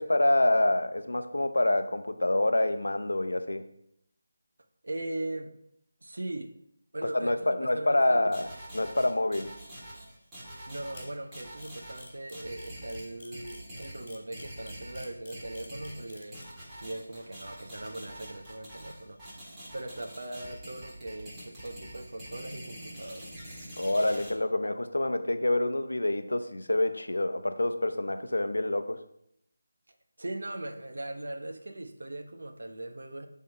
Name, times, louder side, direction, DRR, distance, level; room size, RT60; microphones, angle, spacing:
voice 1, 0.0-3.7 7.1-8.5 8.7-9.5 23.8-29.0, left 1 dB, 85° left, 9 dB, 0.6 m, -27 dB
voice 2, 4.8-5.5 6.0-6.5 6.9-8.4 10.7-16.4 16.8-19.2 19.7-23.3 29.9-33.3, right 1 dB, 75° right, 6 dB, 0.8 m, -39 dB
sound 1, 8.3-24.3, right 1 dB, 10° right, 1.6 m, -45 dB
Camera, 10.9-16.4, left 3 dB, 40° left, 1.6 m, -50 dB
7.6 x 3.7 x 4.4 m, 0.75 s
figure-of-eight pair, 165°, 0 cm